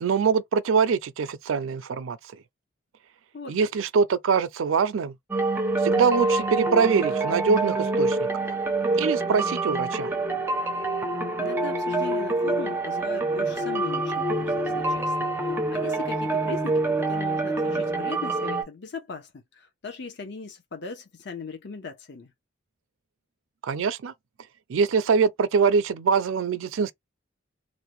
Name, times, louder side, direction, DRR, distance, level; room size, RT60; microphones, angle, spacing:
voice 1, 0.0-2.2 3.5-5.1 5.8-8.3 8.9-10.1 23.6-24.1 24.7-26.9, right 5 dB, 75° right, 0.4 m, -23 dB
sound 1, 5.3-18.6, right 2 dB, 10° right, 0.4 m, -26 dB
voice 2, 11.4-22.3, left 4 dB, 55° left, 0.6 m, -39 dB
2.6 x 2.1 x 3.0 m
head